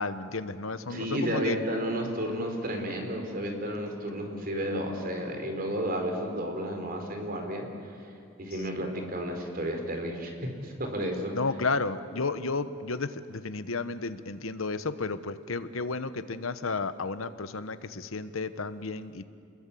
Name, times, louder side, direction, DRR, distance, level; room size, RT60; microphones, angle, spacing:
voice 1, 0.0-1.6 8.7-8.8 11.3-19.2, left 3 dB, 80° left, 12 dB, 1.1 m, -32 dB
voice 2, 0.9-7.7 8.4-10.3 10.6-11.3, equal, 45° right, 4 dB, 4.1 m, -32 dB
27.0 x 21.0 x 8.5 m, 2.5 s
head